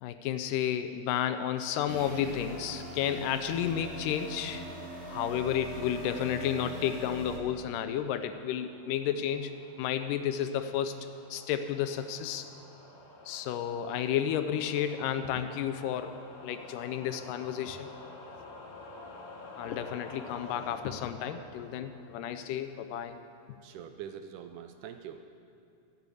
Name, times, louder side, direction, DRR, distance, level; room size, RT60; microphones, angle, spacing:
voice 1, 0.0-4.6 5.1-11.0 11.3-12.5 13.3-16.1 16.4-17.9 19.6-23.2, left 9 dB, 80° left, 10 dB, 2.1 m, -32 dB
sound 1, 1.9-7.4, right 1 dB, 40° right, 3.0 m, -42 dB
sound 2, 3.8-5.7, equal, 5° left, 2.4 m, -57 dB
sound 3, 6.9-22.8, left 2 dB, 45° left, 2.5 m, -50 dB
voice 2, 23.6-25.2, right 9 dB, 80° right, 7 dB, 1.9 m, -44 dB
14.0 x 7.1 x 8.3 m, 2.6 s
omnidirectional pair, 3.9 m